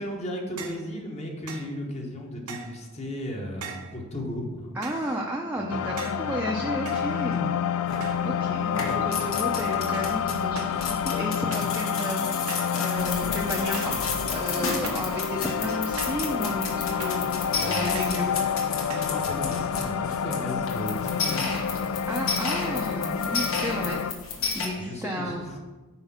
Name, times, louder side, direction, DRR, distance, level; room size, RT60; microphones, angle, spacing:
voice 1, 0.0-4.8 17.5-18.0 18.9-21.6 24.8-25.6, left 1 dB, 30° left, 1 dB, 1.1 m, -35 dB
sound 1, 0.6-0.9 1.5-1.7 2.5-2.8 3.6-4.0 4.8-5.2 6.0-6.3 6.9-7.5 8.0-8.4 8.7-9.2 9.9-10.2 10.6-10.8 11.5-11.8 12.5-12.8 13.7-14.1 14.8-15.2 16.0-16.3 17.0-17.3 17.9-18.3 18.9-19.2, right 5 dB, 85° right, 0.8 m, -40 dB
voice 2, 4.7-7.6 8.2-14.0 14.3-18.4 22.1-24.0 24.5-25.5, equal, 10° right, -2 dB, 0.5 m, -32 dB
sound 2, 5.7-24.1, left 7 dB, 80° left, 0.4 m, -28 dB
sound 3, 7.9-8.3 8.7-24.7, left 4 dB, 65° left, 1.2 m, -33 dB
5.7 x 4.6 x 5.8 m, 1.2 s
head